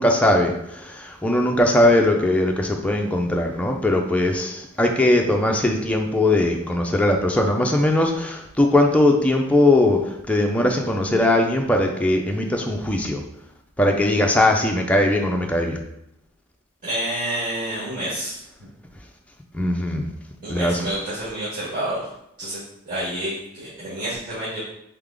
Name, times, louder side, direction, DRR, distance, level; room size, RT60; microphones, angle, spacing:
voice 1, 0.0-13.2 13.8-15.8 19.5-20.1 20.5-20.8, left 1 dB, 5° left, 1 dB, 0.4 m, -20 dB
voice 2, 16.8-18.4 20.4-22.1 22.4-22.6 22.8-24.6, right 1 dB, 40° right, -12 dB, 1.7 m, -28 dB
3.8 x 3.5 x 3.6 m, 0.82 s
head